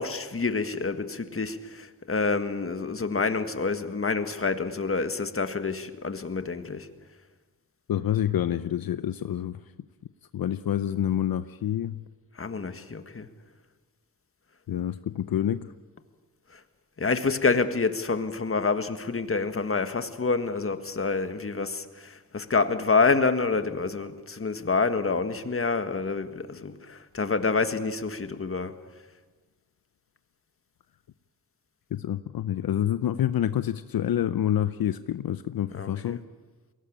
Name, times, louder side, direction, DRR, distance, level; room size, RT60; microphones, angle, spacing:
voice 1, 0.0-6.9 12.4-13.3 16.5-16.6 17.0-28.8 35.7-36.2, left 4 dB, 40° left, 1.7 m, -27 dB
voice 2, 7.9-9.6 10.3-12.0 14.7-15.7 31.9-36.2, left 11 dB, 75° left, 0.7 m, -27 dB
22.0 x 18.0 x 8.7 m
cardioid pair, 70°, 36 cm